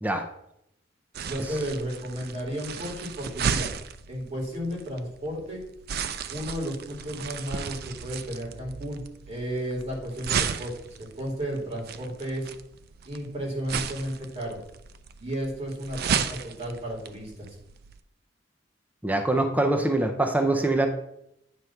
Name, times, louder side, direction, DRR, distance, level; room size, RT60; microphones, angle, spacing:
sound 1, 1.1-18.0, right 7 dB, 55° right, 0.4 m, -34 dB
voice 1, 1.2-3.7 4.1-5.6 6.3-9.0 9.3-12.5 13.0-14.6 15.2-17.6, equal, 35° right, -3 dB, 2.5 m, -33 dB
voice 2, 19.0-20.9, right 2 dB, 10° right, 5 dB, 0.6 m, -24 dB
9.2 x 3.3 x 5.7 m, 0.78 s
head